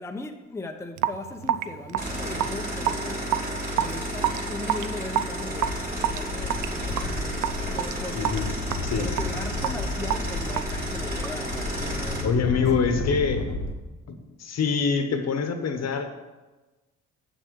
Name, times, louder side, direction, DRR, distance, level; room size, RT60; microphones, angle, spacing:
voice 1, 0.0-3.4 3.8-8.4 9.0-12.6, left 2 dB, 10° left, 0.7 m, -38 dB
Raindrop / Drip, 1.0-11.5, right 11 dB, 80° right, 0.5 m, -30 dB
sound 1, 2.0-12.2, equal, 30° right, 3.1 m, -32 dB
sound 2, 5.0-5.1 5.3-13.7, left 3 dB, 85° left, 1.3 m, -33 dB
voice 2, 8.1-8.5 8.8-9.1 12.2-13.4 14.1-16.1, left 5 dB, 60° left, 1.2 m, -25 dB
7.3 x 6.5 x 7.0 m
cardioid pair, 90°, 30 cm